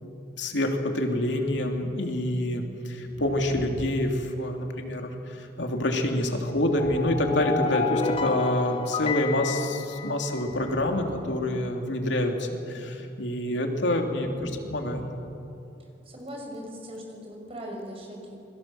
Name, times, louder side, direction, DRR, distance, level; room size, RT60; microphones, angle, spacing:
voice 1, 0.0-15.0, left 1 dB, 80° left, 3 dB, 3.0 m, -27 dB
sound 1, 3.0-4.9 6.4-8.3 10.4-12.1 14.1-15.4 15.6-15.7, equal, 55° right, 1.8 m, -45 dB
sound 2, 6.7-10.7, left 5 dB, 30° left, 0.8 m, -31 dB
voice 2, 14.0-14.4 16.1-18.3, equal, 30° right, 1 dB, 5.9 m, -40 dB
28.0 x 22.5 x 7.7 m, 2.8 s
head